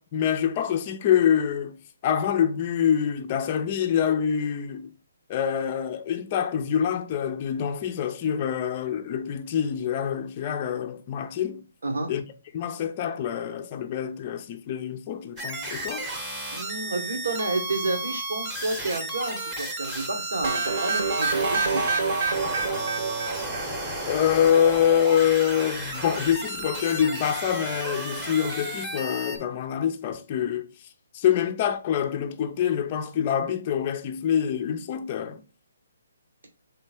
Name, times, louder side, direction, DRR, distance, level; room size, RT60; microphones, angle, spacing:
voice 1, 0.0-1.8 2.0-4.9 5.3-11.6 12.1-12.2 12.5-16.1 24.0-30.9 31.1-35.4, left 9 dB, 30° left, 0.4 m, -25 dB
sound 1, 15.4-29.4, right 1 dB, 10° right, 0.8 m, -33 dB
voice 2, 16.5-21.9, right 2 dB, 85° right, 1.2 m, -30 dB
sound 2, 20.4-24.2, right 4 dB, 50° right, 0.9 m, -27 dB
3.8 x 3.3 x 4.3 m
hypercardioid pair, 160°, 0 cm